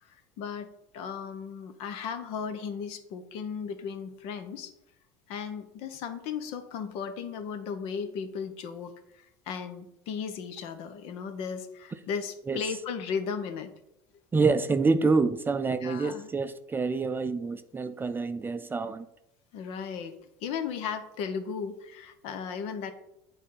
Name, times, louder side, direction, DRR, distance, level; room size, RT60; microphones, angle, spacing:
voice 1, 0.0-4.7 5.3-13.7 15.8-16.3 19.5-22.9, left 6 dB, 65° left, 1.0 m, -36 dB
voice 2, 14.3-19.1, right 4 dB, 20° right, 0.4 m, -27 dB
8.3 x 3.5 x 5.5 m
supercardioid pair, 95°, 11 cm